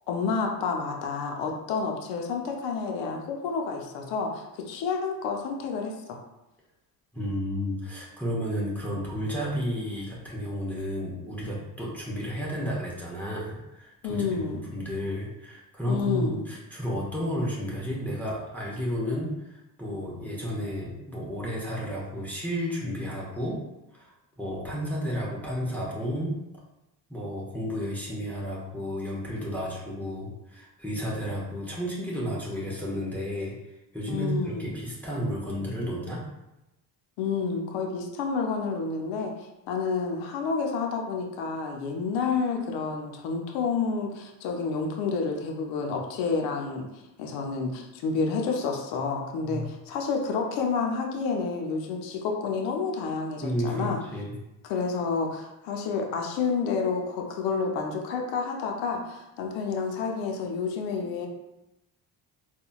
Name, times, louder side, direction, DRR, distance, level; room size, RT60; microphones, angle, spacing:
voice 1, 0.1-6.2 14.0-14.7 15.9-16.4 34.1-34.8 37.2-39.3 39.7-46.9 47.2-54.0 54.6-61.3, left 5 dB, 70° left, 2 dB, 0.7 m, -29 dB
voice 2, 7.1-23.6 23.9-26.4 27.1-33.5 33.9-36.2 49.4-49.7 53.4-54.3, equal, 5° left, -6 dB, 1.0 m, -32 dB
3.7 x 2.3 x 2.3 m, 0.93 s
hypercardioid pair, 55°, 47 cm